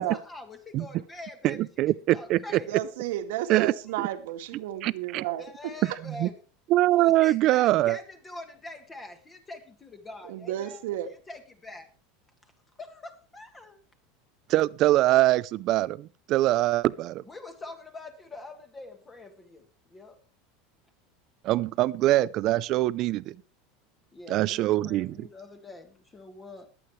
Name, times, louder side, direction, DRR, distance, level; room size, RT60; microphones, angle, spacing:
voice 1, 0.0-1.7 2.1-2.7 5.4-6.3 7.0-10.8 11.1-11.9 12.8-13.8 17.3-19.6 19.9-20.2 24.1-26.7, left 2 dB, 15° left, 1.9 m, -44 dB
voice 2, 1.4-2.4 3.5-3.7 4.0-4.1 4.8-5.3 6.0-6.3 6.7-8.0 14.5-17.2 21.4-23.4 24.3-25.3, right 16 dB, 45° right, 0.5 m, -23 dB
voice 3, 2.7-5.7 10.2-11.1, right 12 dB, 80° right, 1.8 m, -32 dB
21.0 x 8.8 x 3.2 m
supercardioid pair, 140°, 0 cm